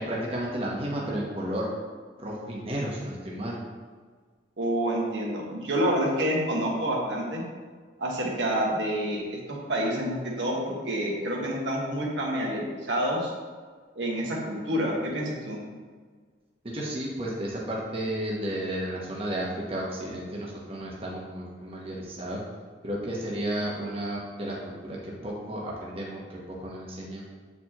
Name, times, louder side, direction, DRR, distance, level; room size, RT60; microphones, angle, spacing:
voice 1, 0.0-1.7 2.2-3.6 16.6-22.4 22.8-24.6 24.8-27.2, right 1 dB, 30° right, -4 dB, 1.0 m, -33 dB
voice 2, 4.6-7.4 8.0-9.2 9.5-13.3 13.9-15.6, right 1 dB, 85° right, -2 dB, 1.3 m, -28 dB
7.9 x 4.5 x 2.9 m, 1.5 s
head